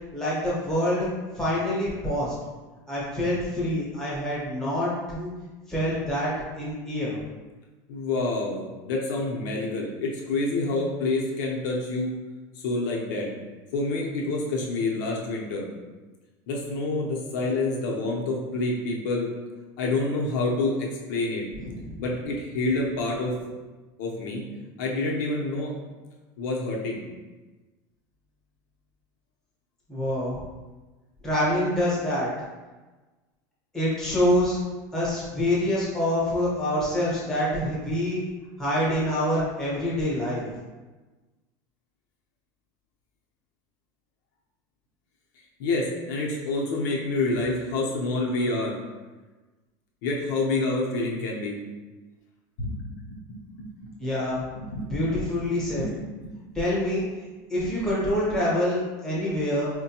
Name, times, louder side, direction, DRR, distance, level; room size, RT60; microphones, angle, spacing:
voice 1, 0.1-1.1 1.4-2.3 2.9-5.3 5.7-7.2 21.6-22.0 29.9-30.3 31.2-32.3 33.7-34.6 34.9-38.3 38.6-40.4 54.0-54.4 54.9-55.9 56.5-57.0 57.5-59.7, left 1 dB, 5° left, -8 dB, 1.0 m, -26 dB
voice 2, 7.9-12.1 12.6-13.3 13.7-15.6 16.5-19.3 19.8-21.5 22.0-23.3 24.0-24.4 24.8-25.7 26.4-27.0 45.6-48.7 50.0-51.6 52.6-53.9 54.5-54.9 55.5-55.9 56.2-56.3, left 2 dB, 90° left, -2 dB, 0.8 m, -28 dB
4.4 x 2.2 x 2.9 m, 1.2 s
cardioid pair, 170°, 10 cm